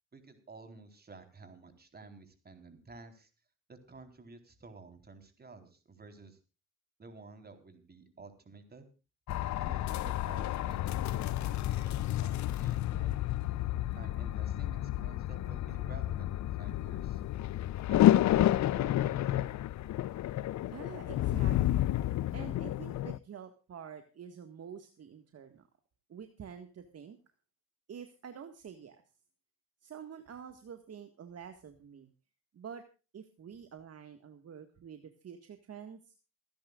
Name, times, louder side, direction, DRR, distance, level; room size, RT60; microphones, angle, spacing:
voice 1, 0.1-3.3 3.7-6.4 7.0-8.9 9.6-13.2 14.0-17.2 17.9-19.6, right 3 dB, 30° right, 7 dB, 4.1 m, -52 dB
sound 1, 9.3-23.2, left 13 dB, 65° left, 0.7 m, -30 dB
voice 2, 20.7-21.9 22.3-25.6 26.1-27.2 27.9-29.0 29.8-32.1 32.5-32.8 33.1-36.1, right 7 dB, 55° right, 7 dB, 1.9 m, -48 dB
28.5 x 10.5 x 2.5 m, 0.33 s
cardioid pair, 90°, 30 cm